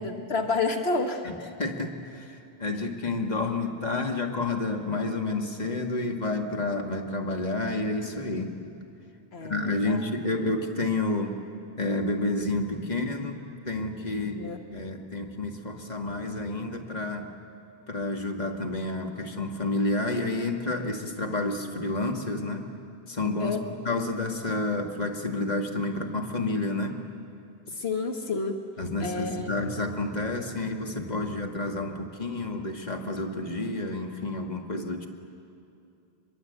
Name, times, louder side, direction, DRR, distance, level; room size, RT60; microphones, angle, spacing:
voice 1, 0.0-1.2 9.3-10.0 14.1-14.6 23.4-23.6 27.7-28.6 29.0-29.5, left 3 dB, 75° left, 4 dB, 1.5 m, -30 dB
voice 2, 1.6-8.5 9.4-11.3 11.8-13.4 13.7-17.3 17.9-22.7 23.1-27.0 28.8-35.1, left 2 dB, 40° left, 3 dB, 1.9 m, -30 dB
25.5 x 22.0 x 8.0 m, 2.6 s
omnidirectional pair, 1.1 m